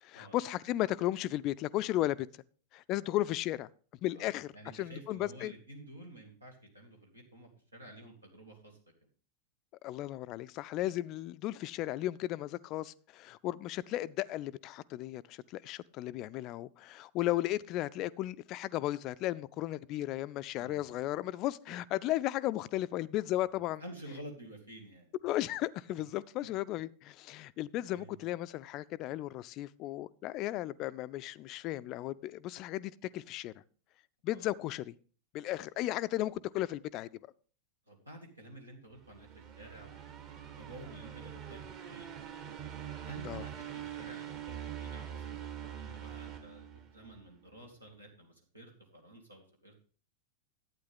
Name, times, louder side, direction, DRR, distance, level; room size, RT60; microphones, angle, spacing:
voice 1, 0.0-2.3 2.7-3.7 4.0-5.5 9.8-23.8 25.2-33.5 34.2-34.9 35.3-37.1 43.2-43.4, left 15 dB, 40° left, 0.4 m, -35 dB
voice 2, 4.5-8.8 20.6-21.0 21.7-21.8 23.4-25.1 27.9-28.2 34.3-34.5 35.5-35.6 37.9-41.6 41.9-42.1 43.1-49.8, right 1 dB, 80° right, 2.4 m, -51 dB
sound 1, 39.0-47.3, right 9 dB, 40° right, 1.9 m, -44 dB
11.5 x 8.9 x 3.7 m
figure-of-eight pair, 90°, 0 cm